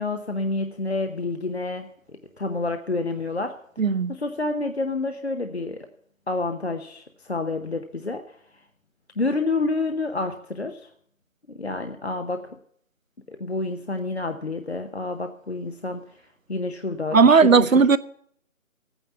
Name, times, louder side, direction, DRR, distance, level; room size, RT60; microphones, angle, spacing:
voice 1, 0.0-3.6 4.1-5.9 6.3-8.4 9.2-10.9 11.5-12.6 13.3-16.0 16.5-17.8, left 3 dB, 50° left, 0.9 m, -29 dB
voice 2, 3.8-4.1 17.1-18.0, right 5 dB, 75° right, 0.9 m, -16 dB
14.0 x 9.2 x 7.0 m
figure-of-eight pair, 180°, 40 cm